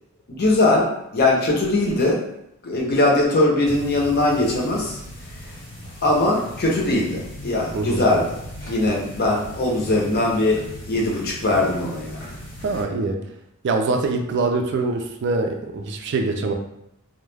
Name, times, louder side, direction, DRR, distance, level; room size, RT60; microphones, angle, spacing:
voice 1, 0.3-0.9 1.1-2.2 2.6-5.0 6.0-8.3 8.6-10.6 10.9-12.4, left 2 dB, 45° left, -3 dB, 0.6 m, -20 dB
sound 1, 3.6-12.8, equal, 80° left, 1.1 m, -38 dB
voice 2, 12.6-13.2 13.6-16.5, right 3 dB, 55° right, 4 dB, 0.4 m, -23 dB
2.3 x 2.1 x 3.2 m, 0.81 s
head